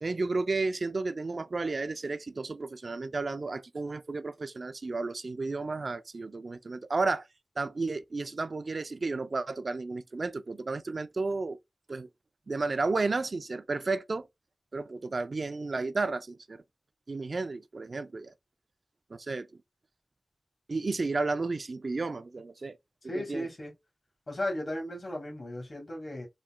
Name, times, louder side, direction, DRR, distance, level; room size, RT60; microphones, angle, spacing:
voice 1, 0.0-7.3 7.6-11.6 11.9-12.1 12.5-14.2 14.7-16.6 17.1-18.3 19.1-19.5 20.7-22.8 23.0-23.5, right 3 dB, 65° right, 0.4 m, -32 dB
voice 2, 23.1-23.7 24.3-26.3, left 1 dB, 55° left, 1.9 m, -35 dB
5.0 x 4.2 x 2.2 m
wide cardioid pair, 70°, 0 cm